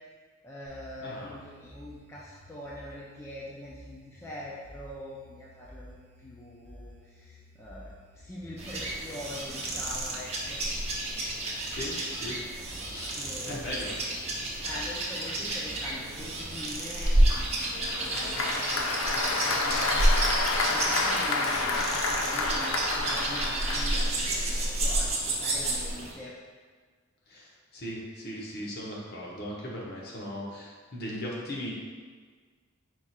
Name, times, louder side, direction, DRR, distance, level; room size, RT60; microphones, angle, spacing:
voice 1, 0.4-7.9 8.2-10.6 13.1-26.3, left 1 dB, 15° left, -6 dB, 0.4 m, -43 dB
sound 1, 0.6-16.6, equal, 60° right, 1.0 m, -52 dB
voice 2, 1.0-1.3 11.7-12.4 12.8-13.2 13.5-13.9 14.3-14.4 27.3-31.7, equal, 50° left, -4 dB, 0.9 m, -38 dB
sound 2, 8.6-26.1, right 1 dB, 30° right, 0.6 m, -30 dB
Applause, 17.3-24.4, left 3 dB, 65° left, 0.5 m, -29 dB
4.6 x 2.4 x 4.2 m, 1.5 s
head